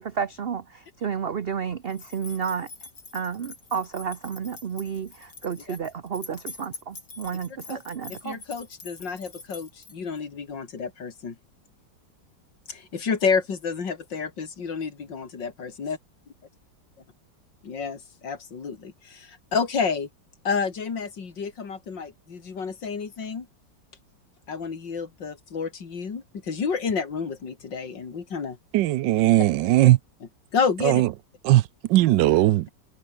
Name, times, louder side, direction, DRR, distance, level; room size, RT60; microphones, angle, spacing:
voice 1, 0.0-2.7 3.1-8.4, right 7 dB, 45° right, 0.8 m, -31 dB
sound 1, 1.9-10.2, left 4 dB, 65° left, 4.5 m, -45 dB
voice 2, 8.1-11.4 12.7-16.0 17.6-20.1 20.4-23.5 24.5-28.6 30.5-31.0, left 5 dB, 85° left, 3.3 m, -30 dB
voice 3, 28.7-30.0 30.8-31.1 31.4-31.6 31.9-32.7, right 15 dB, 85° right, 1.3 m, -18 dB
omnidirectional pair, 1.9 m